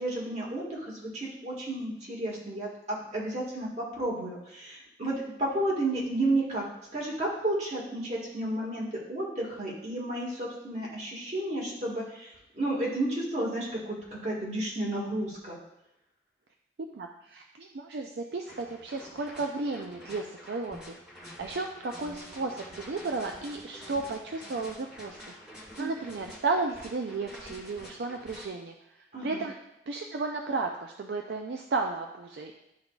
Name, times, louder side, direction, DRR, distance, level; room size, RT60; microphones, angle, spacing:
voice 1, 0.0-2.7 3.1-5.1 5.4-6.6 6.9-15.6 25.8-26.0 29.1-29.4, right 1 dB, 40° right, -4 dB, 1.7 m, -32 dB
voice 2, 16.9-21.0 21.4-25.2 25.8-28.7 29.2-29.5 29.9-32.6, right 3 dB, 65° right, 2 dB, 0.4 m, -33 dB
sound 1, 18.5-28.5, equal, 5° right, 1.4 m, -47 dB
11.0 x 3.8 x 2.4 m, 0.87 s
head